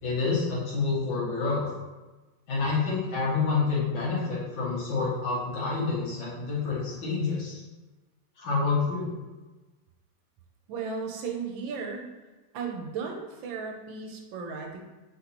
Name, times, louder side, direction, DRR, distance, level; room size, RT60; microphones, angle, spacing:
voice 1, 0.0-1.7 2.5-7.6 8.4-9.1, left 4 dB, 75° left, -7 dB, 2.1 m, -28 dB
voice 2, 10.7-12.1 12.5-14.8, right 5 dB, 75° right, 2 dB, 1.4 m, -35 dB
4.4 x 2.6 x 4.2 m, 1.2 s
omnidirectional pair, 2.2 m